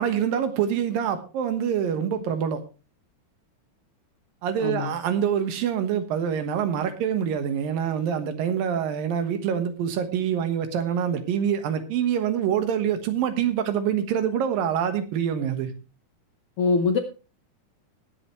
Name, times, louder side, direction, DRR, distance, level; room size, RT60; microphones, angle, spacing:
voice 1, 0.0-2.6 4.4-15.7, right 8 dB, 90° right, 9 dB, 3.1 m, -25 dB
voice 2, 4.6-4.9 16.6-17.0, left 4 dB, 70° left, 5 dB, 1.3 m, -23 dB
20.0 x 7.9 x 3.1 m, 0.33 s
omnidirectional pair, 3.9 m